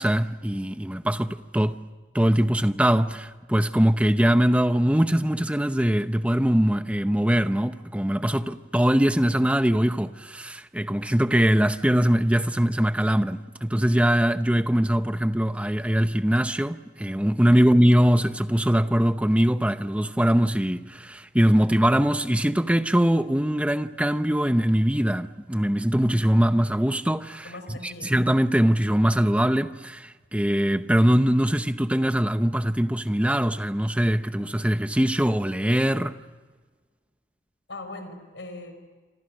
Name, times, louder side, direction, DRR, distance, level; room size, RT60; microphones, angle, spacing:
voice 1, 0.0-1.8 2.1-36.2, equal, 5° right, 0.7 m, -22 dB
voice 2, 27.4-28.1 37.7-38.9, left 2 dB, 80° left, 4.5 m, -40 dB
28.5 x 26.0 x 6.3 m
head